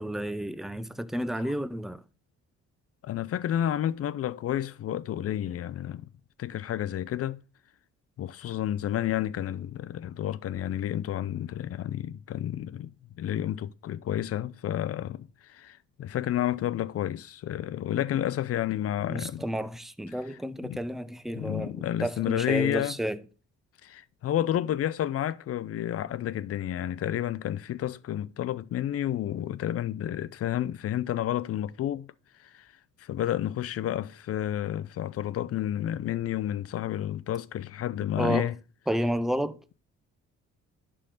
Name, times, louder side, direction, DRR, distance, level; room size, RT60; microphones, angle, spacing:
voice 1, 0.0-2.0 19.1-23.2 38.2-38.5 38.9-39.7, right 1 dB, ahead, 0.5 m, -31 dB
voice 2, 3.0-6.1 6.4-7.4 8.2-12.9 13.2-19.4 20.3-20.8 21.3-22.9 23.8-32.1 32.4-32.7 33.0-38.6, left 11 dB, 50° left, 0.5 m, -30 dB
11.0 x 3.8 x 3.9 m
cardioid pair, 90°, 30 cm